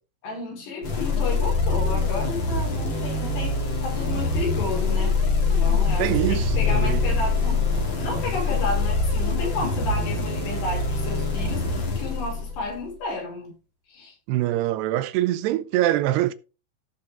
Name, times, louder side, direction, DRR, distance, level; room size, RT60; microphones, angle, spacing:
voice 1, 0.2-3.6 3.8-7.6 7.9-13.5 13.9-14.1, left 3 dB, 85° left, 7.4 m, -32 dB
sound 1, 0.8-12.8, left 3 dB, 35° left, 2.7 m, -24 dB
voice 2, 6.0-7.0 14.3-16.3, right 14 dB, 90° right, 2.8 m, -24 dB
16.5 x 6.8 x 3.5 m
omnidirectional pair, 4.7 m